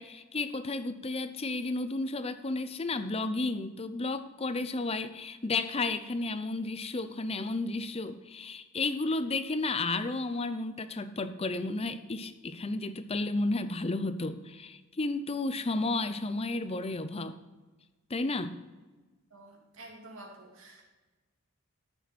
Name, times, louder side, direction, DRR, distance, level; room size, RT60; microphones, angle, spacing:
voice 1, 0.0-17.4 18.1-18.5, left 2 dB, 30° left, 11 dB, 0.6 m, -32 dB
voice 2, 19.3-20.8, right 2 dB, 75° right, -1 dB, 2.8 m, -49 dB
14.0 x 6.9 x 4.2 m, 1.2 s
head